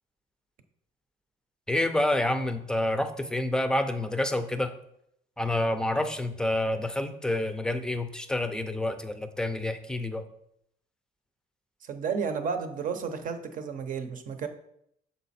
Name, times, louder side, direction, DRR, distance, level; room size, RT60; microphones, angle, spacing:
voice 1, 1.7-4.7 5.4-10.2, left 1 dB, 5° left, 9 dB, 0.6 m, -28 dB
voice 2, 11.8-14.5, right 6 dB, 50° right, 7 dB, 0.8 m, -32 dB
6.7 x 4.2 x 4.2 m, 0.74 s
cardioid pair, 110°, 17 cm